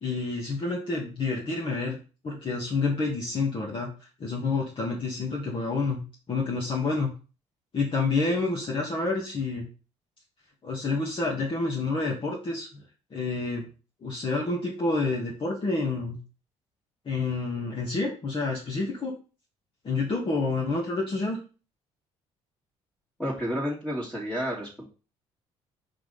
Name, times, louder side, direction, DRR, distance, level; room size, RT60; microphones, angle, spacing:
voice 1, 0.0-2.0 2.2-3.9 4.2-6.0 6.3-7.1 7.7-9.7 10.6-12.8 13.1-13.7 14.0-16.2 17.1-19.1 19.8-21.4, left 3 dB, 40° left, -3 dB, 1.9 m, -28 dB
voice 2, 23.2-24.9, equal, 5° left, -5 dB, 2.2 m, -31 dB
4.6 x 4.1 x 5.5 m, 0.35 s
supercardioid pair, 75°, 13 cm